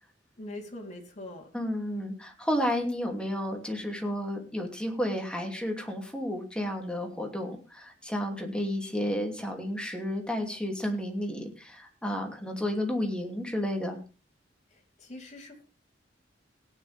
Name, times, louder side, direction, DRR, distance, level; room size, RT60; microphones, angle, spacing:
voice 1, 0.4-1.5 14.7-15.6, left 1 dB, 40° left, 0 dB, 3.6 m, -43 dB
voice 2, 1.5-14.0, equal, 5° left, 2 dB, 2.8 m, -32 dB
17.5 x 10.0 x 3.5 m, 0.33 s
head